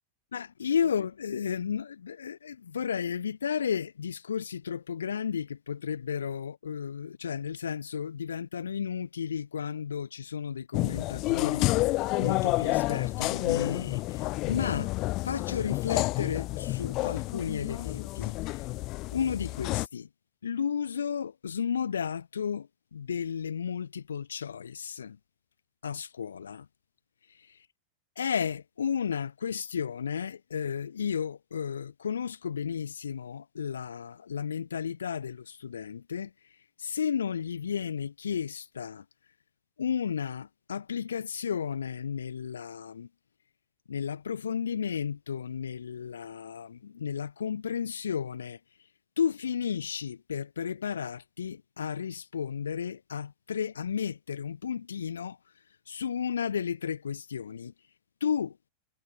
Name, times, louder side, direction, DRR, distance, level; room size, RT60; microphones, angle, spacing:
voice 1, 0.3-11.7 12.2-14.9 15.2-18.6 19.1-20.1 20.4-25.2 25.8-26.7 27.3-27.7 28.2-39.0 39.8-43.1 43.9-48.6 49.2-55.4 55.9-57.7 58.2-58.6, left 7 dB, 70° left, 0.7 m, -33 dB
sound 1, 10.7-19.9, left 20 dB, 40° left, 1.5 m, -29 dB
figure-of-eight pair, 90°, 0 cm